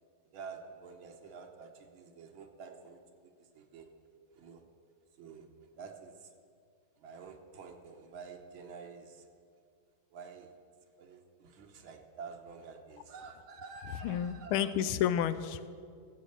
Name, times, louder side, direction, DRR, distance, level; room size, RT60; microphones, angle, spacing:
voice 1, 0.3-3.9 4.3-4.6 5.2-5.5 5.8-6.3 7.0-9.3 10.1-10.5 11.0-14.7, right 5 dB, 75° right, 4 dB, 1.8 m, -49 dB
voice 2, 14.0-15.7, left 10 dB, 80° left, 13 dB, 1.4 m, -30 dB
15.0 x 7.6 x 6.6 m, 2.2 s
omnidirectional pair, 2.4 m